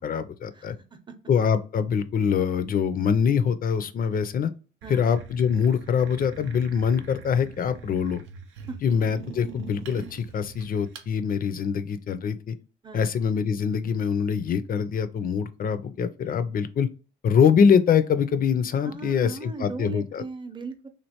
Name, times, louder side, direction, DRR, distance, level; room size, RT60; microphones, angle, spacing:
voice 1, 0.0-0.8 1.3-4.5 4.9-8.2 8.8-12.5 12.9-16.9 17.2-20.2, left 7 dB, 45° left, 0.4 m, -24 dB
voice 2, 0.5-1.2 4.8-5.0 8.7-8.8 12.8-13.1 18.8-20.9, right 4 dB, 25° right, 0.7 m, -38 dB
sound 1, 4.8-11.1, right 6 dB, 85° right, 0.5 m, -43 dB
3.2 x 2.5 x 2.8 m
cardioid pair, 90°, 20 cm